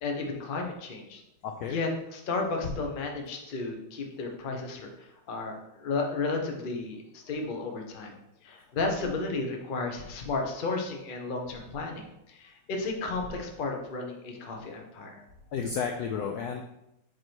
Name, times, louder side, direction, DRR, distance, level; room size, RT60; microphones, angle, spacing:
voice 1, 0.0-1.2 1.7-8.1 8.4-15.2, left 3 dB, 45° left, 2 dB, 0.7 m, -33 dB
voice 2, 1.4-1.8 15.2-15.3 15.5-16.6, left 6 dB, 75° left, 4 dB, 0.9 m, -32 dB
7.5 x 3.1 x 4.5 m, 0.85 s
omnidirectional pair, 2.1 m